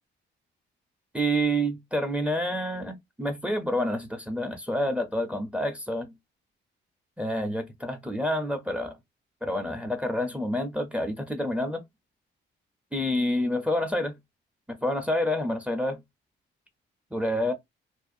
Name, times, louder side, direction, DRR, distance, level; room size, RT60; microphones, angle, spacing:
voice 1, 1.1-6.1 7.2-9.0 9.4-11.8 12.9-14.2 14.7-16.0 17.1-17.5, equal, 5° right, 0.4 m, -28 dB
2.4 x 2.1 x 2.5 m
cardioid pair, 90°, 20 cm